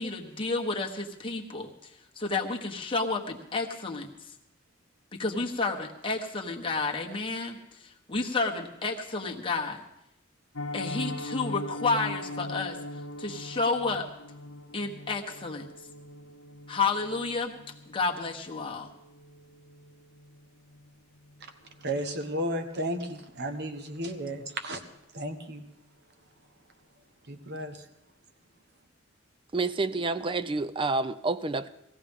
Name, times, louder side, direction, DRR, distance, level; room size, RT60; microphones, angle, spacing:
voice 1, 0.0-4.1 5.1-9.8 10.7-12.8 13.2-14.1 14.7-15.7 16.7-17.5 17.9-18.9, left 3 dB, 25° left, 0 dB, 1.4 m, -31 dB
Piano, 10.5-21.4 21.7-21.9 22.3-22.4 22.8-23.0 23.3-23.4, left 1 dB, 85° left, 0.8 m, -41 dB
voice 2, 21.8-24.8 25.1-25.6 27.3-27.8, right 1 dB, 55° right, 7 dB, 1.2 m, -33 dB
voice 3, 29.5-31.7, right 3 dB, 25° right, 14 dB, 0.4 m, -28 dB
19.0 x 15.0 x 3.7 m, 0.81 s
head